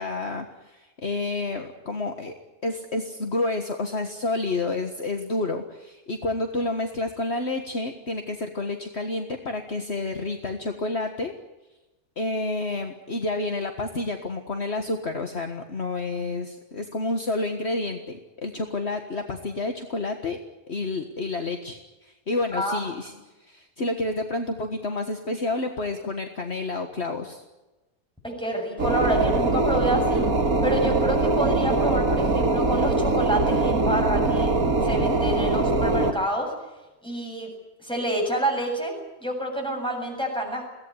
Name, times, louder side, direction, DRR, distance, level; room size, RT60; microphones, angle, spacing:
voice 1, 0.0-2.3 2.6-11.3 12.2-20.4 20.7-23.1 23.4-27.4, left 2 dB, 50° left, 5 dB, 1.9 m, -29 dB
voice 2, 22.5-22.9 28.2-30.2 30.6-34.5 34.8-36.5 37.0-37.5 37.8-38.9 39.2-40.7, right 1 dB, 5° left, 1 dB, 7.7 m, -28 dB
sound 1, 28.8-36.1, right 2 dB, 75° right, 2.4 m, -22 dB
22.5 x 17.5 x 9.7 m, 1.1 s
omnidirectional pair, 1.5 m